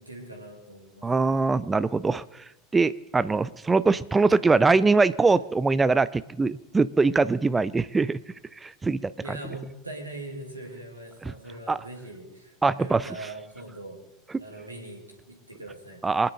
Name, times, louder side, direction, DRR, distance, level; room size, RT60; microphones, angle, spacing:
voice 1, 0.0-1.4 9.2-14.0 14.4-16.0, right 1 dB, 90° right, 2 dB, 2.6 m, -41 dB
voice 2, 1.0-2.2 2.7-8.2 8.6-9.4 11.2-11.3 11.7-11.8 12.6-13.1 16.0-16.3, right 3 dB, 15° right, 17 dB, 0.5 m, -22 dB
24.0 x 9.8 x 3.8 m, 1.0 s
figure-of-eight pair, 75°, 0 cm